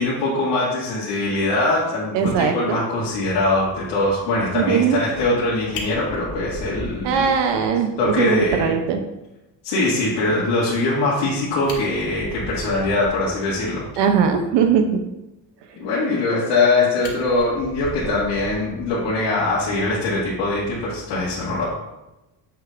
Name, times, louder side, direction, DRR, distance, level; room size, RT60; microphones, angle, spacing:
voice 1, 0.0-7.3 8.0-8.7 9.6-13.9 15.8-21.7, left 2 dB, 80° left, -9 dB, 2.2 m, -22 dB
voice 2, 2.1-2.8 4.5-5.0 7.0-9.0 14.0-15.0, right 7 dB, 70° right, 5 dB, 0.8 m, -20 dB
Fire, 5.7-7.7 8.0-8.1 8.5-8.6 8.9-9.0 11.2-11.3 11.6-13.3 16.1-16.7 17.0-19.2 20.5-20.7, left 3 dB, 65° left, 1.6 m, -36 dB
7.8 x 6.4 x 2.5 m, 0.98 s
cardioid pair, 150°, 43 cm